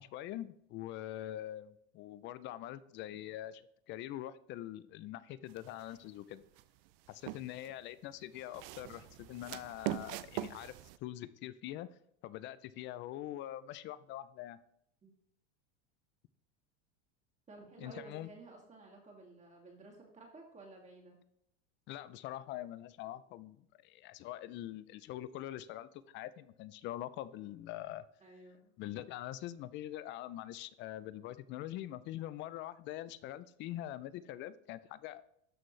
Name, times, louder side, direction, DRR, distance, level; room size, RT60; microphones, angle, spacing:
voice 1, 0.0-6.4 7.1-10.7 11.0-11.9 12.2-14.6 17.8-18.3 21.9-28.0 28.8-35.2, left 13 dB, 35° left, 16 dB, 0.4 m, -44 dB
sound 1, 5.5-6.0 6.6-7.7 8.4-11.0, right 15 dB, 55° right, 0.5 m, -42 dB
voice 2, 17.5-21.2 28.2-28.7, right 3 dB, 20° right, -1 dB, 2.1 m, -54 dB
12.5 x 4.4 x 3.2 m, 0.73 s
supercardioid pair, 130°, 36 cm